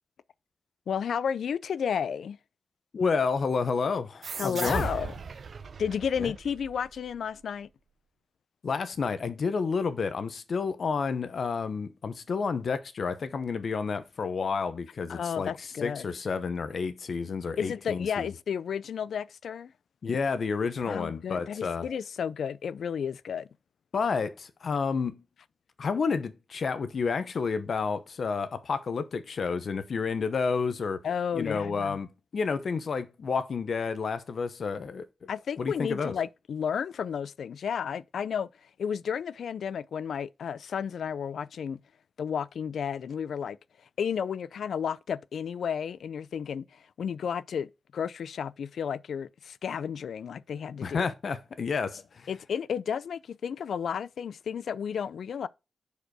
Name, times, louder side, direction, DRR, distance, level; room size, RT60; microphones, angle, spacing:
voice 1, 0.9-2.4 4.4-5.1 5.8-7.7 15.1-16.1 17.6-19.7 20.9-23.5 31.0-32.0 35.3-38.5 38.8-41.8 42.2-43.6 44.0-47.7 47.9-51.1 52.3-55.5, left 7 dB, 90° left, 0.4 m, -32 dB
voice 2, 2.9-4.9 6.2-6.3 8.6-15.5 15.8-18.3 20.0-21.9 23.9-25.2 25.8-31.0 31.3-35.0 35.6-36.1 50.8-52.3, left 5 dB, 55° left, 0.8 m, -30 dB
sound 1, 4.2-7.4, right 5 dB, 50° right, 0.6 m, -38 dB
6.6 x 5.1 x 4.7 m
wide cardioid pair, 175°, 0 cm